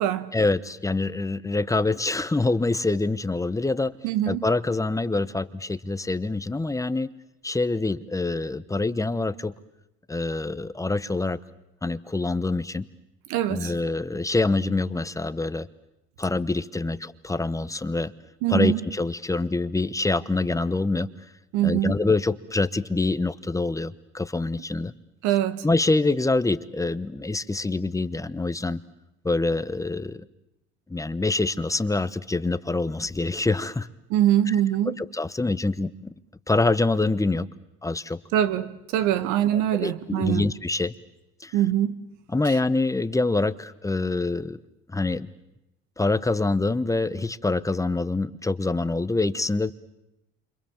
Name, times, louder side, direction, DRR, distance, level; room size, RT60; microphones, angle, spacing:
voice 1, 0.3-3.9 4.3-7.1 7.4-9.5 10.1-11.4 11.8-12.9 13.5-15.7 16.2-18.1 18.5-21.1 21.6-24.9 25.6-28.8 29.2-30.2 30.9-33.9 34.5-34.6 35.0-36.1 36.5-37.5 37.8-38.2 39.5-40.9 41.4-41.6 42.3-44.6 44.9-45.3 46.0-49.7, left 3 dB, 10° left, 0.9 m, -25 dB
voice 2, 4.0-4.4 13.3-13.7 18.4-18.8 21.5-22.0 25.2-25.6 34.1-35.0 38.3-40.5 41.5-41.9, right 12 dB, 80° right, 1.5 m, -23 dB
28.5 x 25.5 x 7.3 m
supercardioid pair, 95°, 30 cm